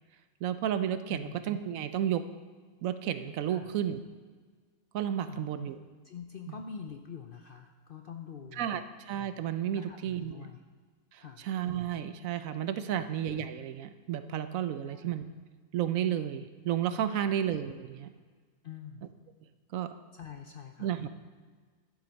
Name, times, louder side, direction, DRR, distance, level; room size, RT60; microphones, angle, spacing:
voice 1, 0.4-2.2 2.8-4.0 4.9-5.8 6.5-6.6 8.6-8.8 9.1-10.5 11.1-15.3 15.7-18.1 19.7-19.9 20.8-21.1, right 10 dB, 75° right, 11 dB, 1.0 m, -32 dB
voice 2, 1.1-1.4 3.5-3.7 5.3-5.5 6.0-8.8 9.7-10.6 11.1-11.5 12.9-13.1 14.8-15.1 17.1-17.3 18.6-19.1 20.1-20.9, left 7 dB, 60° left, 5 dB, 0.6 m, -45 dB
12.0 x 7.2 x 5.2 m, 1.5 s
omnidirectional pair, 1.5 m